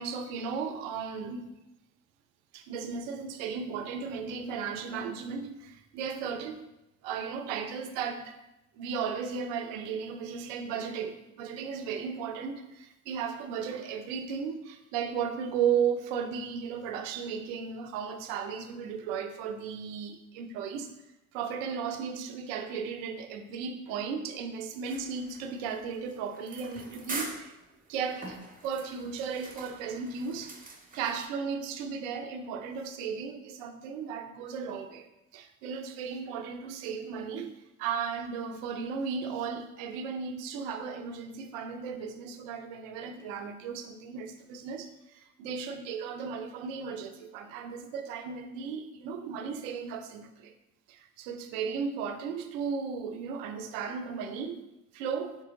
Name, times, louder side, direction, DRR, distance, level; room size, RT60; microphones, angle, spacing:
voice 1, 0.0-1.5 2.5-6.7 7.0-8.4 8.8-20.9 21.3-27.5 27.9-35.1 35.3-37.5 37.8-50.5 50.9-54.7 54.9-55.4, right 6 dB, 75° right, 7 dB, 0.6 m, -35 dB
sound 1, 24.8-31.3, right 3 dB, 20° right, 0.8 m, -44 dB
4.5 x 3.0 x 3.7 m, 0.92 s
hypercardioid pair, 45°, 41 cm